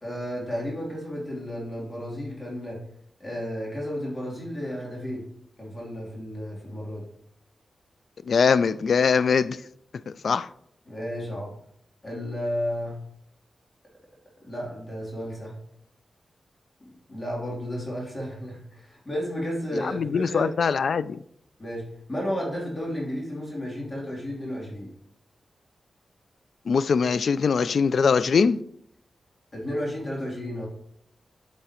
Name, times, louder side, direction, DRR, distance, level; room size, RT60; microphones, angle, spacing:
voice 1, 0.0-2.8 3.2-5.3 5.6-7.1 10.9-11.5 12.0-13.0 14.4-15.6 17.1-20.5 21.6-24.9 29.5-30.7, equal, 30° left, 3.0 m, -32 dB
voice 2, 8.3-9.6 10.1-10.5 19.7-21.2 26.7-28.6, left 5 dB, 75° left, 0.3 m, -22 dB
8.1 x 7.5 x 3.0 m
wide cardioid pair, 85°, 0 cm